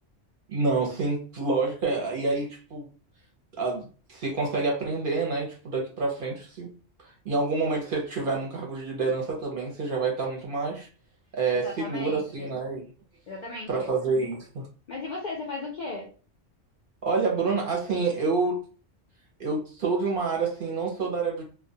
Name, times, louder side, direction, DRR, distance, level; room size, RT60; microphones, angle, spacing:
voice 1, 0.5-2.9 3.6-6.7 7.2-10.9 11.3-12.8 13.7-14.7 17.0-18.6 19.4-21.4, right 3 dB, 55° right, -1 dB, 0.7 m, -28 dB
voice 2, 11.5-12.5 13.3-13.9 14.9-16.1, left 3 dB, 60° left, -2 dB, 0.4 m, -36 dB
2.2 x 2.1 x 2.7 m, 0.38 s
omnidirectional pair, 1.3 m